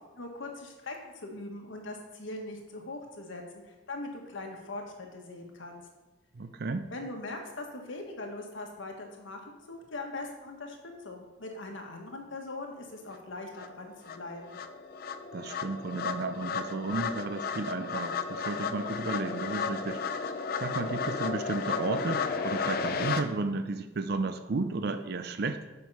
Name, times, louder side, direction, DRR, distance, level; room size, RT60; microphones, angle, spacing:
voice 1, 0.1-5.8 6.9-14.6, left 2 dB, 85° left, 2 dB, 1.5 m, -41 dB
voice 2, 6.3-6.8 15.3-20.3 20.6-25.6, right 3 dB, 55° right, 9 dB, 0.5 m, -33 dB
sound 1, 13.1-13.2 13.6-23.2, left 5 dB, 50° left, 0.5 m, -33 dB
7.7 x 5.4 x 5.5 m, 1.1 s
head